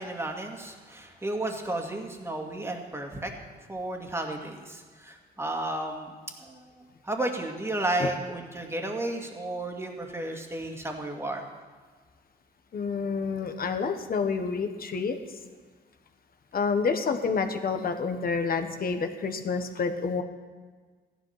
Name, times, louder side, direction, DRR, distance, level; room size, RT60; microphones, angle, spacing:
voice 1, 0.0-3.3 3.7-6.1 6.4-11.4, right 1 dB, 15° right, 2 dB, 2.1 m, -33 dB
voice 2, 12.7-15.2 16.5-20.2, left 5 dB, 50° left, 7 dB, 1.4 m, -28 dB
14.5 x 11.0 x 5.9 m, 1.4 s
cardioid pair, 90°, 20 cm